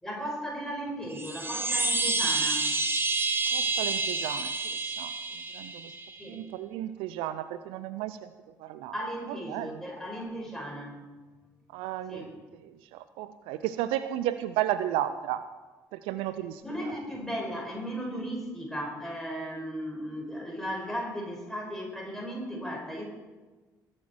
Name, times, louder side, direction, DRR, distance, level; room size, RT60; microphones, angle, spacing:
voice 1, 0.0-2.7 6.2-6.4 8.9-11.1 12.1-12.4 16.6-23.0, equal, 5° left, -2 dB, 5.1 m, -36 dB
sound 1, 1.1-6.2, right 3 dB, 20° right, 1.6 m, -29 dB
voice 2, 3.5-5.1 5.5-5.9 6.3-8.3 8.6-8.9 9.5-9.7 11.7-12.3 12.9-15.4 15.9-16.6, right 12 dB, 65° right, 13 dB, 0.5 m, -33 dB
20.5 x 7.5 x 4.6 m, 1.3 s
figure-of-eight pair, 45°, 10 cm